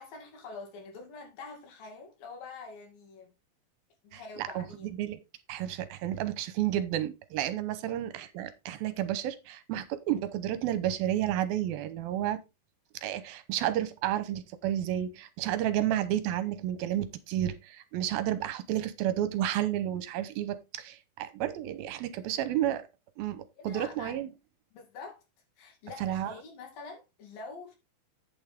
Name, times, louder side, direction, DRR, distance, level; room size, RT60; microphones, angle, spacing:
voice 1, 0.0-3.3 4.0-4.9 23.6-24.2 24.7-25.2 25.6-27.8, left 4 dB, 70° left, 3.9 m, -45 dB
voice 2, 4.1-4.7 5.0-5.2 5.5-12.4 13.0-22.8 23.2-24.3 26.0-26.3, right 12 dB, 80° right, 2.7 m, -31 dB
8.7 x 7.1 x 3.6 m
omnidirectional pair, 4.3 m